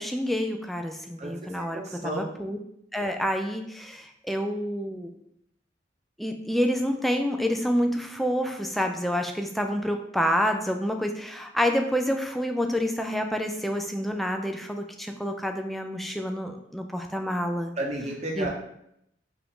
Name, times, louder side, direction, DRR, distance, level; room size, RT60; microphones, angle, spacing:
voice 1, 0.0-2.6 2.9-5.1 6.2-17.7 18.4-18.5, equal, ahead, 4 dB, 0.3 m, -28 dB
voice 2, 1.7-2.2 17.8-18.5, right 1 dB, 35° right, 0 dB, 0.8 m, -31 dB
4.8 x 2.6 x 3.6 m, 0.76 s
head